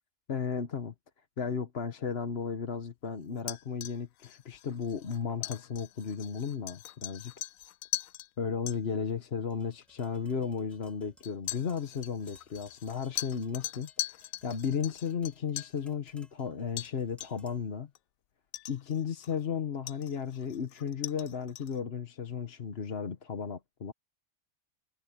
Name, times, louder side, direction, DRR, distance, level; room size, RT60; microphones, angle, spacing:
voice 1, 0.3-0.9 1.4-7.3 8.4-17.9 18.7-23.9, left 6 dB, 50° left, 1.3 m, -34 dB
sound 1, 3.4-8.3 8.7-8.8 9.8-9.9 11.2-15.8 16.8-16.9 17.2-17.5 17.9-18.0 18.5-19.4 19.9-21.8, left 14 dB, 85° left, 1.0 m, -41 dB
Tap, 9.5-17.8, equal, ahead, 3.3 m, -63 dB
omnidirectional pair, 1.4 m